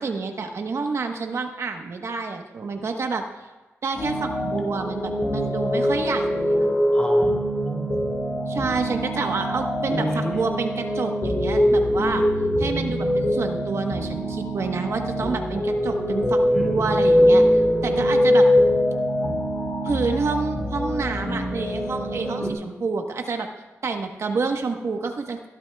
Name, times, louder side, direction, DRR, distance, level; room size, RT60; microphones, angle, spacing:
voice 1, 0.0-3.5 3.8-6.7 8.5-12.3 12.6-18.5 19.8-23.5 23.8-25.5, right 4 dB, 65° right, 4 dB, 1.1 m, -28 dB
sound 1, 3.9-22.5, equal, 50° left, 3.6 m, -23 dB
voice 2, 6.9-8.1 9.9-10.4 16.5-17.2 22.4-22.5, equal, 15° left, -2 dB, 2.1 m, -31 dB
22.5 x 11.5 x 2.3 m, 1.2 s
wide cardioid pair, 115°, 5 cm